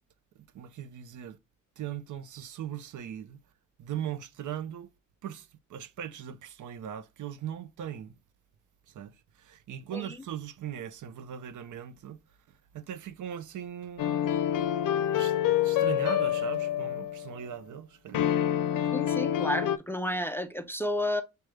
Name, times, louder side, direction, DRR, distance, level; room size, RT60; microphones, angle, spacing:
voice 1, 0.5-1.4 1.8-3.4 3.8-4.9 5.2-8.1 8.9-9.1 9.4-12.2 12.5-14.2 15.1-15.4 15.6-18.3, right 9 dB, 70° right, 0.6 m, -39 dB
sound 1, 14.0-17.3 18.1-19.8, left 10 dB, 85° left, 0.5 m, -27 dB
voice 2, 18.9-21.2, left 1 dB, 10° left, 0.4 m, -31 dB
6.2 x 2.3 x 3.2 m
wide cardioid pair, 145°, 31 cm